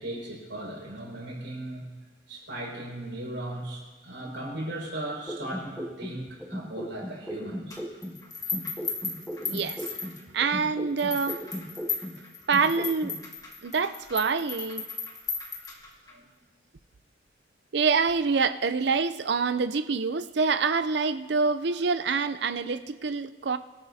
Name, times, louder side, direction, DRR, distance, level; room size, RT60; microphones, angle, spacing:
voice 1, 0.0-1.9 2.3-7.8 16.1-16.3, right 1 dB, 75° right, -3 dB, 5.4 m, -37 dB
sound 1, 5.3-8.2 8.5-12.2 12.5-13.2, equal, 5° right, 0.8 m, -37 dB
sound 2, 7.7-10.5 11.0-16.1, left 5 dB, 20° left, 1.6 m, -36 dB
voice 2, 9.5-9.8 10.3-11.4 12.5-13.2 13.6-14.9 17.7-23.6, right 5 dB, 60° right, 12 dB, 0.5 m, -26 dB
24.0 x 13.0 x 2.8 m, 1.3 s
head